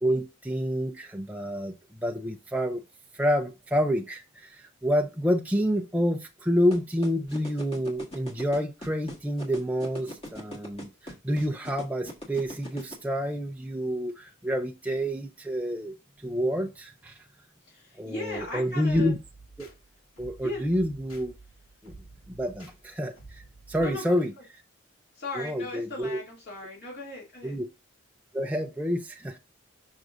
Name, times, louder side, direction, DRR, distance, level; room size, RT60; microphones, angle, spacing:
voice 1, 0.0-1.7 2.0-2.8 3.1-15.9 16.2-17.2 18.0-19.2 19.6-19.7 20.2-21.3 21.8-21.9 22.3-24.3 25.4-26.2 27.4-27.7 28.3-29.4, equal, 5° right, 0.6 m, -28 dB
sound 1, 6.7-12.9, equal, 30° left, 1.8 m, -39 dB
voice 2, 17.7-19.1 20.4-20.7 23.8-24.3 25.1-27.6, left 2 dB, 50° left, 2.7 m, -38 dB
sound 2, 18.3-24.0, right 2 dB, 80° left, 2.2 m, -50 dB
6.2 x 6.2 x 2.6 m
head